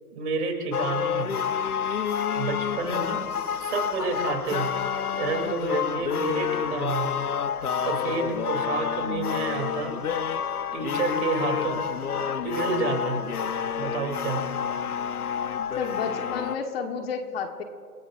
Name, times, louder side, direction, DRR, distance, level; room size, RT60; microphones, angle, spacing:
voice 1, 0.1-1.3 2.3-3.1 3.6-4.7 5.2-7.1 7.7-10.0 10.7-11.9 12.4-13.2 13.8-14.5, right 4 dB, 50° right, 3 dB, 3.5 m, -29 dB
sound 1, 0.7-16.6, left 7 dB, 75° left, 1.0 m, -29 dB
voice 2, 2.8-3.2 15.8-17.6, left 6 dB, 40° left, 5 dB, 1.6 m, -32 dB
29.0 x 18.5 x 2.7 m, 2.2 s
figure-of-eight pair, 135°, 45 cm